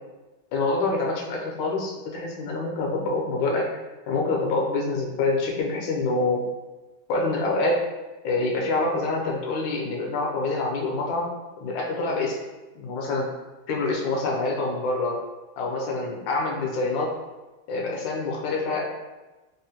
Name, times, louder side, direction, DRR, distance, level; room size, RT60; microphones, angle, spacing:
voice 1, 0.5-3.7 4.1-6.4 7.1-7.8 8.2-11.3 11.6-12.4 12.7-13.3 13.7-15.2 15.6-17.1 17.7-18.9, left 3 dB, 70° left, -1 dB, 1.3 m, -26 dB
3.7 x 2.1 x 2.7 m, 1.1 s
omnidirectional pair, 2.4 m